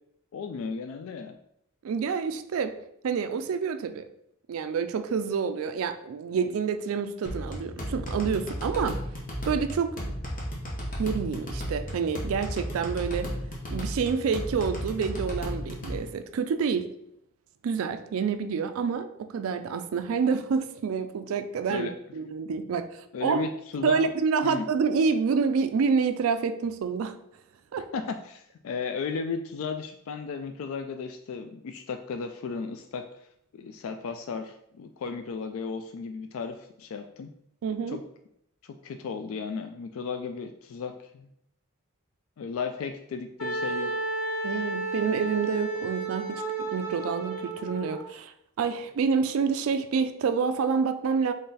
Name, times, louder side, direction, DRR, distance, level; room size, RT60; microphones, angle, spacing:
voice 1, 0.3-1.4 21.7-21.9 23.1-24.1 24.4-24.7 27.9-33.3 33.5-37.3 37.9-38.0 38.6-41.3 42.4-43.9, left 5 dB, 65° left, 7 dB, 0.3 m, -35 dB
voice 2, 1.8-2.7 3.0-4.1 4.5-9.0 9.5-10.0 11.0-13.3 13.7-16.9 17.6-23.5 23.8-27.2 27.7-27.9 37.6-38.0 44.4-51.3, right 5 dB, 65° right, 10 dB, 0.3 m, -28 dB
sound 1, 7.2-16.0, equal, 35° left, 1.0 m, -34 dB
Wind instrument woodwind instrument, 43.4-48.0, right 2 dB, 90° left, 1.5 m, -32 dB
3.9 x 3.2 x 3.9 m, 0.76 s
head